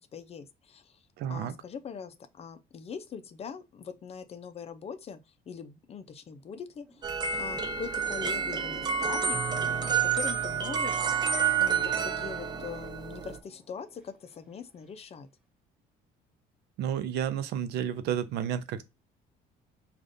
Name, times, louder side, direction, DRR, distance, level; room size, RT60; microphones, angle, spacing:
voice 1, 0.0-5.2 5.5-11.0 11.6-15.3, left 6 dB, 35° left, 0.5 m, -42 dB
voice 2, 1.2-1.5 16.8-18.8, right 9 dB, 80° right, 0.6 m, -31 dB
sound 1, 6.4-14.9, left 1 dB, 5° right, 1.1 m, -51 dB
sound 2, 7.0-13.4, right 7 dB, 25° right, 0.5 m, -29 dB
4.9 x 2.5 x 2.5 m
cardioid pair, 110°, 17 cm